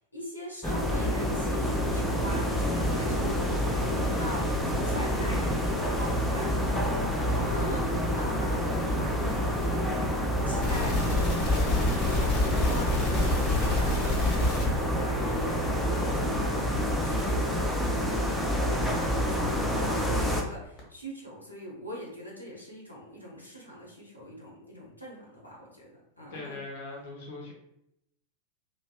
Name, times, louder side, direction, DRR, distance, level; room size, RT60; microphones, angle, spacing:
voice 1, 0.1-26.6, equal, 90° left, -4 dB, 0.7 m, -42 dB
sound 1, 0.6-20.4, equal, 5° left, 0.4 m, -28 dB
sound 2, 10.6-14.8 15.3-15.4 15.8-15.9 16.3-16.4 16.8-16.9 17.3-17.4 17.8-17.9 18.3-18.4 18.8-18.9 19.3-19.4 19.8-19.9 20.3-20.4 20.8-20.9, left 3 dB, 25° left, 1.0 m, -28 dB
voice 2, 26.3-27.5, left 2 dB, 50° left, -2 dB, 0.7 m, -40 dB
2.6 x 2.2 x 2.3 m, 0.78 s
figure-of-eight pair, 90°, 0 cm